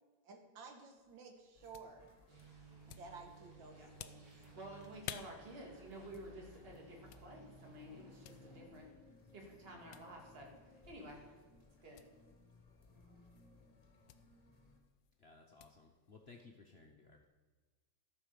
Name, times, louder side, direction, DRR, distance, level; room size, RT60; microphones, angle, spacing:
voice 1, 0.2-2.1 2.9-4.3, right 4 dB, 80° right, 3 dB, 2.1 m, -54 dB
sound 1, 0.9-16.5, left 11 dB, 80° left, 1.3 m, -57 dB
sound 2, 1.5-14.8, left 3 dB, 25° left, 1.0 m, -63 dB
sound 3, 2.3-8.7, right 3 dB, 65° right, 3.3 m, -60 dB
voice 2, 4.4-8.9 9.3-11.3 11.8-12.1, right 1 dB, 30° right, 0 dB, 2.0 m, -52 dB
voice 3, 15.2-17.3, left 3 dB, 50° left, 2 dB, 0.7 m, -59 dB
13.0 x 5.6 x 6.8 m, 1.4 s
omnidirectional pair, 2.1 m